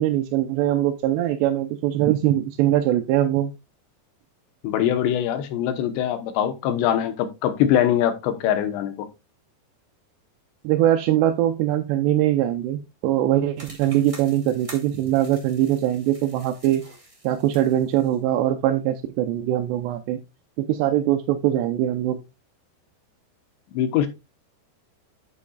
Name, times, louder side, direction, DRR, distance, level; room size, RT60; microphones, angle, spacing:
voice 1, 0.0-3.5 10.6-16.8 17.2-20.2 20.6-22.2, right 12 dB, 85° right, 2.8 m, -22 dB
voice 2, 4.6-9.1 23.7-24.1, left 10 dB, 85° left, 3.3 m, -22 dB
sound 1, 13.6-18.2, right 1 dB, 65° right, 0.3 m, -46 dB
9.4 x 8.5 x 2.4 m
omnidirectional pair, 4.9 m